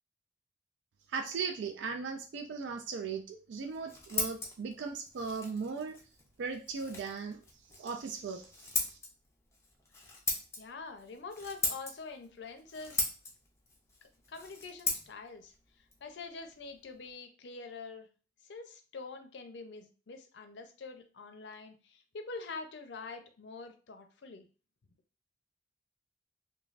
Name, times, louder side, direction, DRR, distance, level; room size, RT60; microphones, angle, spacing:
voice 1, 1.1-6.0 6.4-7.4 7.8-9.0, right 5 dB, 90° right, 5 dB, 0.3 m, -38 dB
Scissors, 3.6-17.1, left 2 dB, 15° left, 0.4 m, -40 dB
voice 2, 10.6-13.1 14.3-15.5 16.0-18.1 18.5-24.5, left 4 dB, 80° left, 6 dB, 0.5 m, -45 dB
3.1 x 2.2 x 2.4 m, 0.36 s
head